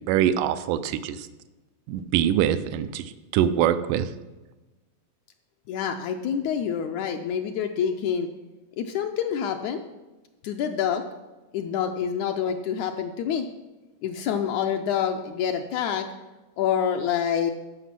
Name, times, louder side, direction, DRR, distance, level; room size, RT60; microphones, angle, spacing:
voice 1, 0.1-1.2 1.9-3.0 3.3-4.0, right 10 dB, 90° right, 12 dB, 2.2 m, -23 dB
voice 2, 5.7-8.3 8.8-9.8 10.4-11.0 11.5-13.5 14.0-16.1 16.6-17.5, left 8 dB, 75° left, 4 dB, 1.8 m, -27 dB
13.5 x 5.9 x 5.8 m, 1.1 s
omnidirectional pair, 3.6 m